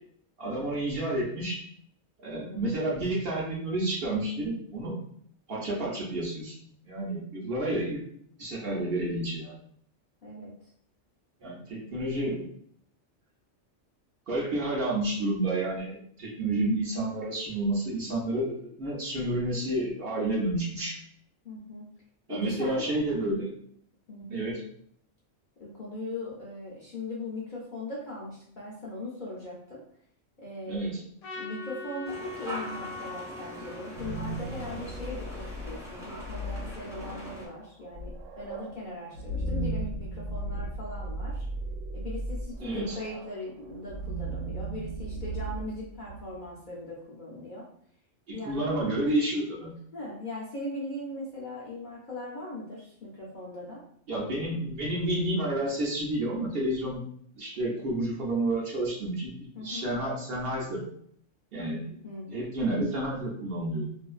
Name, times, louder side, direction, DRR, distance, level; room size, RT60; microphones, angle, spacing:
voice 1, 0.4-1.6 2.2-4.9 5.5-6.5 6.8-8.0 8.4-9.5 11.4-12.5 14.3-21.0 22.3-23.5 24.3-24.6 30.7-31.0 42.6-43.0 48.3-49.7 54.1-57.0 57.4-60.8 61.5-62.0 62.3-63.9, right 1 dB, 60° right, -4 dB, 0.7 m, -30 dB
voice 2, 2.3-2.7 8.7-8.8 10.2-10.5 21.4-21.9 22.3-22.8 24.1-24.5 25.6-29.8 30.4-30.9 31.4-41.5 41.9-47.7 48.3-48.7 49.9-53.8 59.5-59.9 62.0-62.5, left 1 dB, 50° left, -5 dB, 0.6 m, -39 dB
Trumpet, 31.2-35.6, left 3 dB, 80° left, 0.9 m, -43 dB
sound 1, 32.0-37.5, equal, 5° right, 0.5 m, -42 dB
sound 2, 33.8-46.6, right 1 dB, 90° right, 1.0 m, -36 dB
2.5 x 2.3 x 2.3 m, 0.65 s
omnidirectional pair, 1.3 m